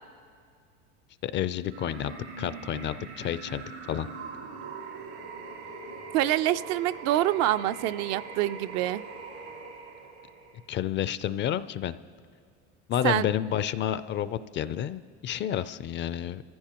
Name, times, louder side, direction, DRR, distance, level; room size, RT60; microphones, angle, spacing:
voice 1, 1.2-4.1 10.7-11.9 12.9-16.4, left 10 dB, 35° left, 15 dB, 0.4 m, -30 dB
sound 1, 1.7-10.7, right 4 dB, 90° right, 3.6 m, -42 dB
voice 2, 6.1-9.0 13.0-13.3, right 13 dB, 55° right, 13 dB, 0.4 m, -26 dB
25.5 x 15.0 x 2.9 m, 2.2 s
supercardioid pair, 105°, 33 cm